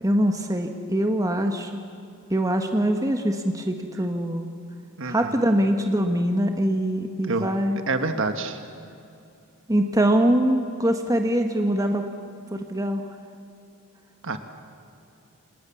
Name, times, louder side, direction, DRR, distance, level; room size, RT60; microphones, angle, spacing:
voice 1, 0.0-1.8 2.3-4.5 5.0-7.8 9.7-12.0 12.5-13.0, right 1 dB, 15° right, 4 dB, 1.4 m, -23 dB
voice 2, 5.0-5.3 7.3-7.5 7.9-8.6 14.2-14.4, right 3 dB, 65° right, 7 dB, 1.6 m, -27 dB
29.0 x 27.5 x 7.2 m, 2.7 s
head